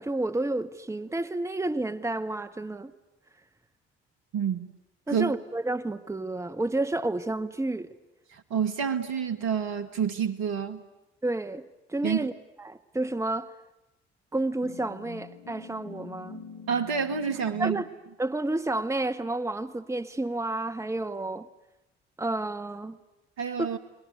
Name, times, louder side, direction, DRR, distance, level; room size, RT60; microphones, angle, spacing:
voice 1, 0.0-2.9 5.1-7.9 11.2-12.3 12.6-13.5 14.3-16.4 17.6-17.9 18.2-21.5 22.2-23.0 23.6-23.7, right 2 dB, 10° right, 9 dB, 1.2 m, -30 dB
voice 2, 4.3-4.7 5.1-5.3 8.3-10.8 12.0-12.3 16.7-17.8 23.4-23.8, right 7 dB, 60° right, 9 dB, 1.9 m, -28 dB
sound 1, 14.6-17.9, left 5 dB, 75° left, 4.6 m, -45 dB
29.5 x 20.5 x 9.5 m, 0.96 s
figure-of-eight pair, 45°, 31 cm